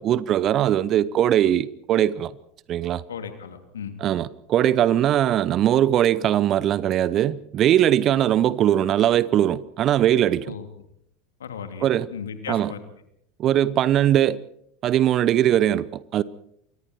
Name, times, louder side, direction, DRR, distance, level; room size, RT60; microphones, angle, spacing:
voice 1, 0.0-2.3 2.7-3.0 4.0-10.5 11.8-12.1 12.5-12.7 13.4-14.4 14.8-16.2, right 11 dB, 35° right, 0.8 m, -20 dB
voice 2, 3.1-3.9 10.5-10.7 11.4-12.8, left 7 dB, 70° left, 2.8 m, -36 dB
28.5 x 23.5 x 4.6 m
figure-of-eight pair, 80°, 0 cm